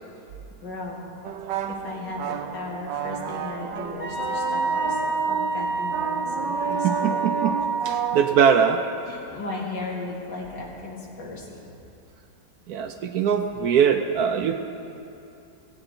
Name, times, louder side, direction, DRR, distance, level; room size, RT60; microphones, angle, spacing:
voice 1, 0.6-1.1 1.7-7.2 9.1-11.6, left 2 dB, 75° left, -3 dB, 2.4 m, -36 dB
sound 1, 1.2-8.3, right 9 dB, 85° right, 1.3 m, -31 dB
Wind instrument woodwind instrument, 4.0-8.4, right 2 dB, 60° left, 2.9 m, -28 dB
voice 2, 6.8-7.5 7.8-8.8 12.7-14.5, right 7 dB, 70° right, 6 dB, 1.0 m, -21 dB
18.0 x 8.8 x 3.8 m, 2.7 s
omnidirectional pair, 1.9 m